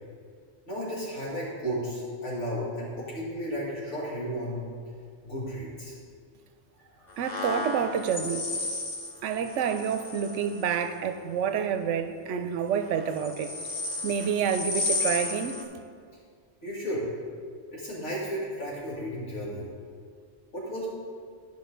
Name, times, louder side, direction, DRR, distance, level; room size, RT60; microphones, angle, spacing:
voice 1, 0.7-4.6 5.2-5.9 7.0-7.1 16.6-17.1 17.7-19.7 20.5-20.9, equal, 80° left, -6 dB, 2.4 m, -33 dB
sound 1, 7.2-10.8 12.9-15.6, left 2 dB, 40° left, 0.9 m, -33 dB
voice 2, 7.2-8.5 9.2-13.5 14.0-15.6, right 7 dB, 90° right, 8 dB, 0.9 m, -28 dB
11.0 x 5.5 x 3.8 m, 2.1 s
omnidirectional pair, 1.2 m